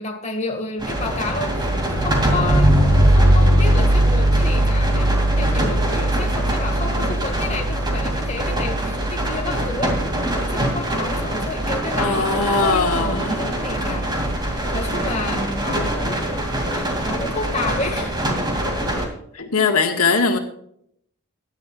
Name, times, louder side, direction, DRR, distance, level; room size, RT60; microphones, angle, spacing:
voice 1, 0.0-2.7 3.1-10.0 10.3-14.2 14.5-16.3 16.7-18.2, left 2 dB, 30° left, 3 dB, 1.8 m, -30 dB
sound 1, 0.8-19.0, right 1 dB, 20° right, 2.5 m, -21 dB
voice 2, 12.0-13.5 18.9-19.1 19.3-20.4, left 4 dB, 80° left, 3 dB, 1.7 m, -20 dB
16.5 x 11.0 x 2.4 m, 0.69 s
head